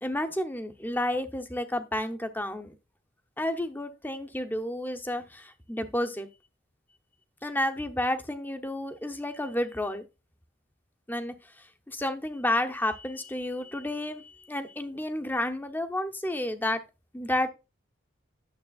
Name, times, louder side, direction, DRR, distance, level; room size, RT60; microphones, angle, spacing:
voice 1, 0.0-2.7 3.4-6.3 7.4-10.1 11.1-16.8 17.1-17.5, left 1 dB, 10° left, 0.7 m, -31 dB
9.5 x 7.1 x 2.3 m
head